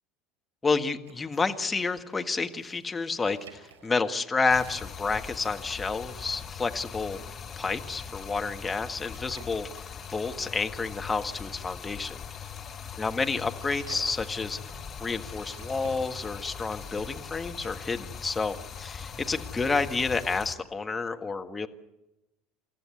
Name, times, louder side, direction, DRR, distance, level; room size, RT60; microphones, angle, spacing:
voice 1, 0.6-7.2 7.6-9.7 10.1-12.2 13.0-14.6 15.0-21.7, left 4 dB, 15° left, 5 dB, 1.5 m, -30 dB
sound 1, 0.9-19.6, right 6 dB, 70° right, 4.8 m, -55 dB
Stream, 4.5-20.5, left 7 dB, 35° left, 2.0 m, -41 dB
28.5 x 13.5 x 8.5 m, 0.99 s
figure-of-eight pair, 70°, 0 cm